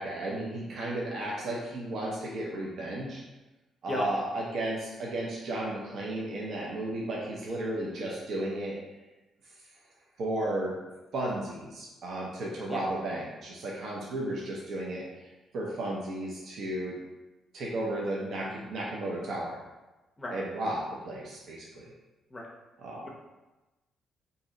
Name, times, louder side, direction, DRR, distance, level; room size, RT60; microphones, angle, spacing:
voice 1, 0.0-3.2 3.8-8.8 10.2-10.7 11.1-15.0 15.5-16.9 17.5-19.6 20.3-21.9 22.8-23.1, right 1 dB, 65° right, -4 dB, 0.5 m, -34 dB
voice 2, 3.9-4.1 12.7-12.8 20.2-20.4 22.3-22.5, left 1 dB, 20° left, -2 dB, 0.5 m, -34 dB
2.6 x 2.0 x 3.6 m, 1.1 s
cardioid pair, 90°, 0 cm